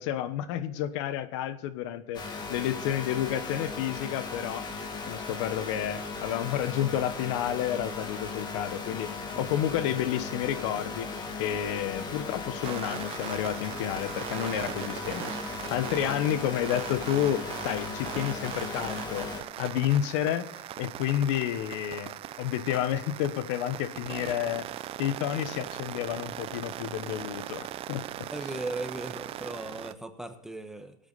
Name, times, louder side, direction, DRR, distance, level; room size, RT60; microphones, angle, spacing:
voice 1, 0.0-2.2 2.5-4.7 5.0-11.1 11.4-19.3 19.6-20.5 20.8-24.7 25.0-28.0, left 11 dB, 80° left, 13 dB, 1.1 m, -30 dB
sound 1, 2.1-19.4, left 4 dB, 30° left, 2.2 m, -37 dB
sound 2, 12.6-29.9, right 13 dB, 40° right, 0.6 m, -39 dB
voice 2, 28.3-31.0, right 2 dB, 5° right, 7 dB, 1.2 m, -37 dB
18.5 x 8.9 x 4.1 m, 0.77 s
supercardioid pair, 135°, 15 cm